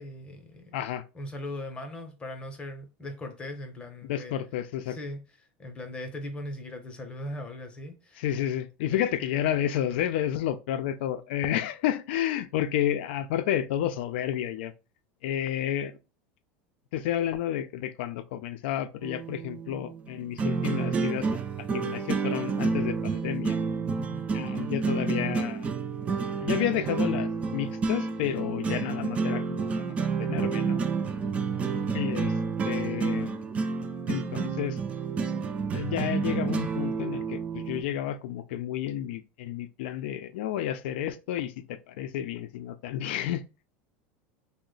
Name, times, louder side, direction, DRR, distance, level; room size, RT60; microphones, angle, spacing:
voice 1, 0.0-0.8 1.1-4.4 4.9-5.2 5.6-8.2 8.9-9.0 23.9-24.3 31.5-32.0, left 1 dB, 20° left, 0.7 m, -39 dB
voice 2, 0.7-1.0 4.0-5.0 8.2-14.7 15.2-16.0 16.9-21.4 21.7-23.6 24.3-25.7 26.4-29.7 30.0-30.8 31.9-32.4 32.7-33.4 34.1-34.8 35.7-43.5, left 11 dB, 80° left, 0.4 m, -31 dB
sound 1, 19.0-37.8, right 4 dB, 25° right, 0.3 m, -29 dB
2.9 x 2.1 x 3.8 m
supercardioid pair, 140°, 6 cm